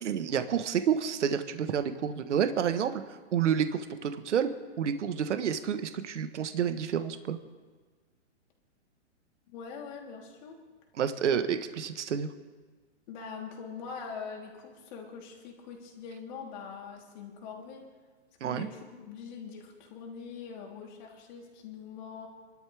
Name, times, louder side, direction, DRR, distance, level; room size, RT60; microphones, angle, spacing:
voice 1, 0.0-2.9 3.3-4.5 4.8-7.4 11.0-12.3 18.4-18.7, right 8 dB, 75° right, 9 dB, 1.4 m, -29 dB
voice 2, 9.5-10.6 13.1-17.8 18.4-22.3, left 6 dB, 40° left, 0 dB, 3.4 m, -43 dB
28.0 x 12.5 x 3.4 m, 1.4 s
hypercardioid pair, 150°, 36 cm